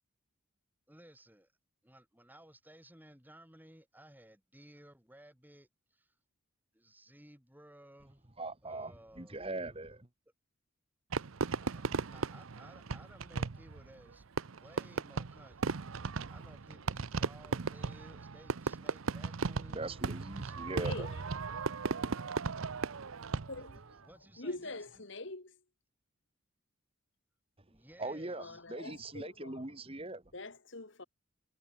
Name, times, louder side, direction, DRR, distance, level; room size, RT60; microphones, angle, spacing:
voice 1, 0.9-1.5 1.8-6.1 6.7-8.3 8.6-9.6 11.6-14.2 14.6-20.0 20.4-21.3 24.0-25.1 27.7-28.6, right 1 dB, 10° right, 3.5 m, -58 dB
voice 2, 8.4-10.1 19.7-21.1 28.0-30.2, right 2 dB, 25° right, 1.8 m, -41 dB
Fireworks, 11.1-23.8, right 4 dB, 75° right, 0.7 m, -36 dB
voice 3, 20.7-21.1 23.5-23.8 24.4-25.6 28.4-29.7 30.3-31.0, left 2 dB, 60° left, 2.0 m, -44 dB
head